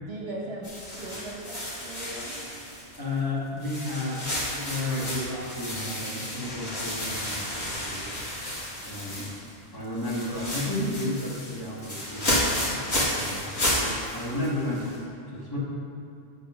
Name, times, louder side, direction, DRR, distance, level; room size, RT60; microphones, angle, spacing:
voice 1, 0.1-2.4, right 2 dB, 55° right, -4 dB, 1.5 m, -38 dB
sound 1, 0.6-3.2 3.6-9.6 9.8-15.0, left 1 dB, 60° left, 2.3 m, -32 dB
voice 2, 3.0-8.2 8.8-9.3 9.7-12.9 13.1-14.9 15.3-15.6, left 1 dB, 15° left, -8 dB, 1.8 m, -32 dB
8.5 x 4.3 x 6.2 m, 2.6 s
omnidirectional pair, 1.3 m